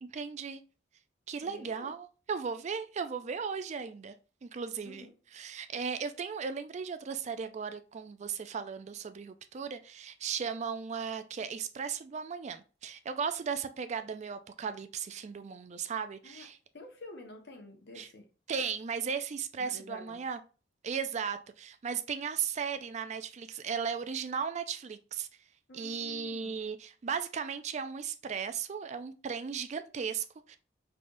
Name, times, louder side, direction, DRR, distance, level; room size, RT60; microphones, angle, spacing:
voice 1, 0.0-0.6 1.3-4.1 4.4-16.6 18.0-18.1 18.5-20.4 20.8-25.3 25.7-30.6, right 6 dB, 35° right, 0.3 m, -36 dB
voice 2, 1.4-1.9 4.8-5.1 16.2-16.5 16.7-18.3 19.7-20.2 25.7-26.6, left 2 dB, 60° left, 1.1 m, -49 dB
5.1 x 3.3 x 2.6 m
head